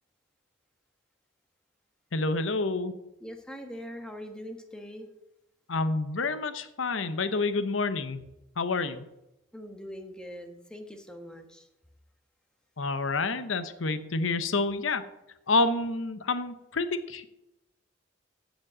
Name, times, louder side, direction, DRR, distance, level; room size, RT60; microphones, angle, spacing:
voice 1, 2.1-2.9 5.7-8.2 8.6-9.0 12.8-15.0 15.5-17.2, left 3 dB, 90° left, 11 dB, 0.9 m, -28 dB
voice 2, 3.2-5.1 9.5-11.7, equal, 5° left, 4 dB, 1.3 m, -42 dB
15.0 x 5.2 x 6.2 m, 0.89 s
head